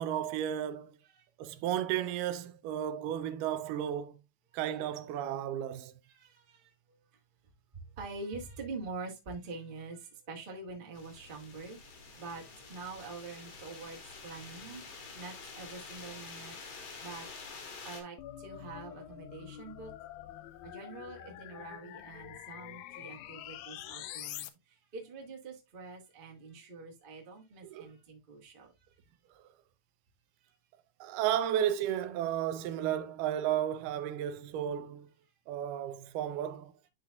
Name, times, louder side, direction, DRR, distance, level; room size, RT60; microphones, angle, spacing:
voice 1, 0.0-1.0 1.4-4.2 4.5-5.9 27.6-27.9 31.0-35.1 35.5-36.7, right 10 dB, 85° right, 2.2 m, -33 dB
voice 2, 6.0-6.7 8.0-11.8 12.2-12.4 12.7-14.9 15.1-16.7 17.0-17.3 17.8-19.9 20.6-24.5 24.9-28.7, right 3 dB, 65° right, 0.5 m, -45 dB
sound 1, 10.9-18.0, left 4 dB, 55° left, 2.4 m, -48 dB
sound 2, 18.2-24.5, left 13 dB, 80° left, 1.7 m, -46 dB
11.5 x 4.0 x 2.3 m
omnidirectional pair, 3.8 m